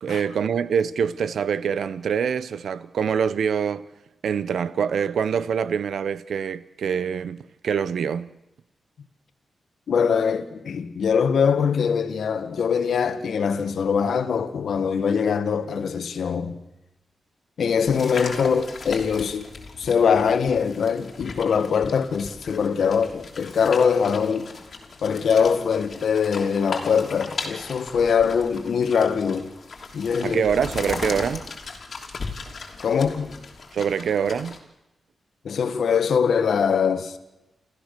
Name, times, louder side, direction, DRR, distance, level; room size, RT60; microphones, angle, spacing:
voice 1, 0.0-3.9 4.2-8.3 30.2-31.4 33.7-34.6, right 7 dB, 85° right, 0.7 m, -25 dB
voice 2, 9.9-16.6 17.6-19.5 19.8-24.5 25.0-29.5 29.9-30.4 32.8-33.4 35.4-37.1, left 6 dB, 75° left, 1.6 m, -22 dB
sound 1, 17.8-34.6, left 4 dB, 50° left, 3.2 m, -37 dB
29.0 x 14.0 x 6.7 m
wide cardioid pair, 120°, 0 cm